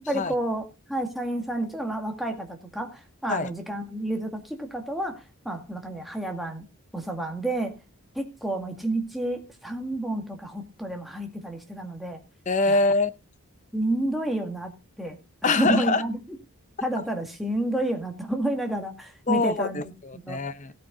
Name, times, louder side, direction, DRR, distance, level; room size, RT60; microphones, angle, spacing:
voice 1, 0.0-0.6 0.9-6.7 6.9-7.8 8.1-12.2 12.7-12.8 13.7-14.7 15.0-16.2 16.8-19.9 20.2-20.4, right 1 dB, ahead, 2.1 m, -30 dB
voice 2, 12.5-13.1 15.4-16.0 19.3-20.7, left 3 dB, 35° left, 0.7 m, -24 dB
16.0 x 8.6 x 3.9 m
head